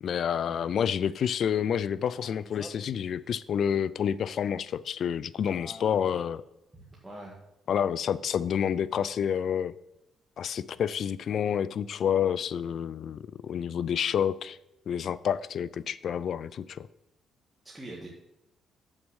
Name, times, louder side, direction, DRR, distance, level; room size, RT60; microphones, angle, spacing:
voice 1, 0.0-6.4 7.7-9.7 10.4-14.6 14.9-16.9, left 8 dB, 60° left, 18 dB, 0.4 m, -29 dB
Male speech man speaking, 2.1-2.9 5.4-6.3, left 2 dB, 25° left, 1.1 m, -47 dB
voice 2, 6.7-7.4 17.6-18.1, right 1 dB, 10° right, -4 dB, 1.8 m, -43 dB
7.4 x 6.2 x 6.3 m, 0.90 s
cardioid pair, 90°, 0 cm